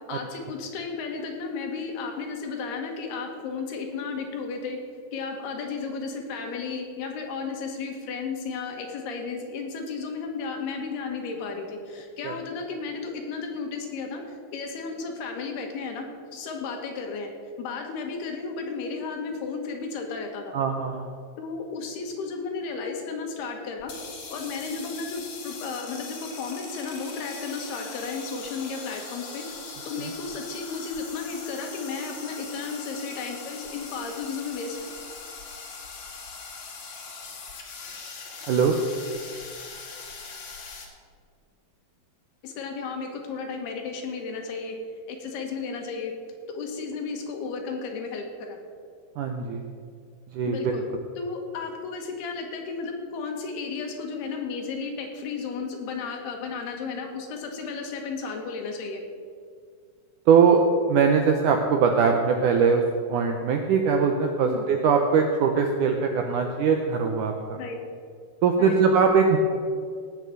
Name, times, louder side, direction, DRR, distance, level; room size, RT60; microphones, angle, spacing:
voice 1, 0.1-4.8 5.1-14.2 14.5-16.0 16.3-17.3 17.6-20.6 21.4-23.9 24.3-29.5 29.9-35.0 42.4-44.8 45.1-46.1 46.5-48.6 50.5-50.9 51.2-59.0 64.5-64.7 67.6-67.8 68.6-68.8, left 4 dB, 80° left, 3 dB, 3.5 m, -33 dB
voice 2, 20.5-21.1 38.5-38.8 49.2-49.6 50.3-50.7 60.3-60.6 60.9-62.8 63.1-67.6 68.4-69.4, right 6 dB, 75° right, 3 dB, 1.9 m, -21 dB
sound 1, 23.8-40.9, left 4 dB, 50° left, 2.3 m, -41 dB
17.0 x 5.9 x 7.7 m, 2.1 s
omnidirectional pair, 4.6 m